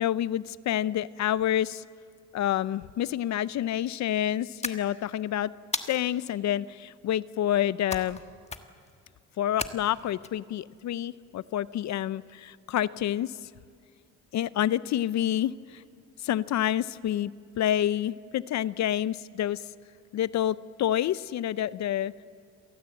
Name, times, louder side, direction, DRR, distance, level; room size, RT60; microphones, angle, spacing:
voice 1, 0.0-1.8 2.3-5.5 5.9-8.2 9.4-13.3 14.3-15.8 16.2-17.3 17.6-19.6 20.1-22.1, left 11 dB, 65° left, 17 dB, 0.6 m, -28 dB
sound 1, 4.6-5.2 5.7-6.3 7.9-8.2 8.5-8.9 9.6-10.3, left 3 dB, 20° left, 1.5 m, -35 dB
27.5 x 18.5 x 7.8 m, 2.2 s
cardioid pair, 90°, 30 cm